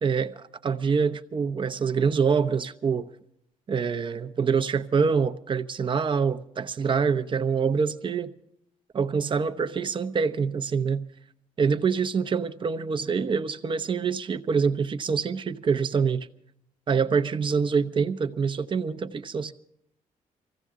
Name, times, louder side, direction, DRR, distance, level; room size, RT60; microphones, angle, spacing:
voice 1, 0.0-3.1 3.7-8.3 8.9-11.0 11.6-16.3 16.9-19.5, right 5 dB, 35° right, 0.9 m, -25 dB
24.0 x 16.0 x 3.7 m
cardioid pair, 115°, 14 cm